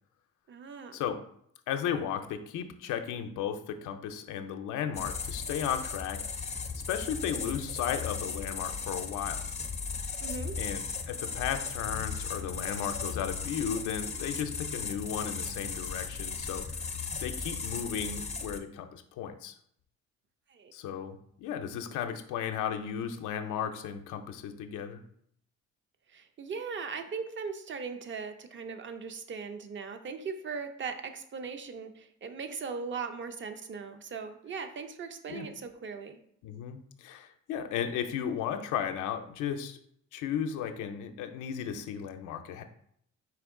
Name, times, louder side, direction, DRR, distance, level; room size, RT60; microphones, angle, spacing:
voice 1, 0.5-1.0 10.2-10.6 20.5-20.7 26.1-36.2, right 5 dB, 40° right, 8 dB, 0.6 m, -39 dB
voice 2, 1.7-6.2 6.9-9.5 10.6-16.9 17.2-19.6 20.7-25.0 35.3-35.5 36.4-39.8 40.1-42.6, left 8 dB, 90° left, 6 dB, 0.5 m, -35 dB
sound 1, 4.9-18.6, left 5 dB, 20° left, 0.5 m, -36 dB
4.8 x 3.0 x 3.6 m, 0.68 s
cardioid pair, 90°, 30 cm